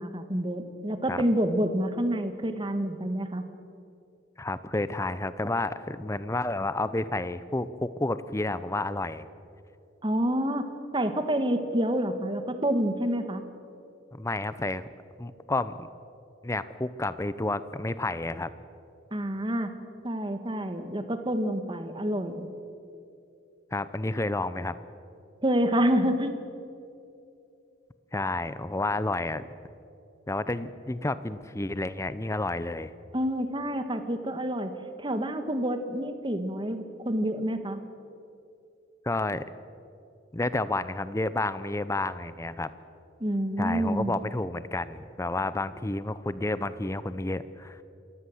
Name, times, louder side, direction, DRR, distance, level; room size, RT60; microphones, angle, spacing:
voice 1, 0.0-3.4 10.0-10.6 10.9-13.4 19.1-19.7 20.0-22.5 25.4-26.3 33.1-34.7 35.0-37.8 43.2-44.1, equal, 25° right, 8 dB, 1.5 m, -28 dB
voice 2, 4.4-9.3 14.1-14.8 15.2-15.9 16.4-18.5 23.7-24.7 28.1-29.5 30.3-32.9 39.0-39.4 40.3-42.7 43.6-47.8, left 2 dB, 15° left, 14 dB, 0.6 m, -30 dB
27.5 x 14.0 x 7.9 m, 2.7 s
head